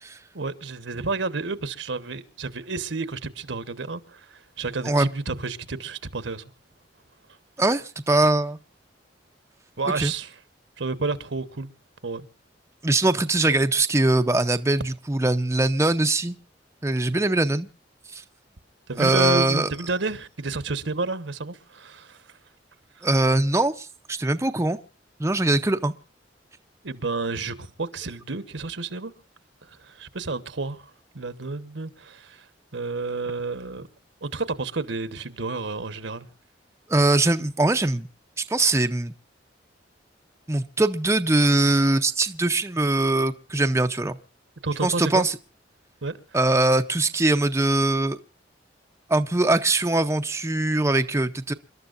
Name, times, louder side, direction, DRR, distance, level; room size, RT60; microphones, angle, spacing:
voice 1, 0.3-6.4 9.8-10.4 10.8-11.7 12.0-12.2 18.9-22.2 22.9-23.1 26.8-29.1 29.6-30.9 31.1-32.5 32.7-33.9 34.2-36.3 44.6-45.2 46.0-46.2, right 3 dB, 75° right, 1.3 m, -30 dB
voice 2, 7.6-8.6 9.9-10.1 12.8-16.4 16.8-17.7 18.1-18.2 19.0-19.7 23.0-24.8 25.2-25.9 36.9-38.1 38.4-39.1 40.5-44.2 44.8-45.4 46.3-48.2 49.1-51.5, right 2 dB, 15° right, 0.6 m, -22 dB
28.5 x 12.5 x 2.6 m
head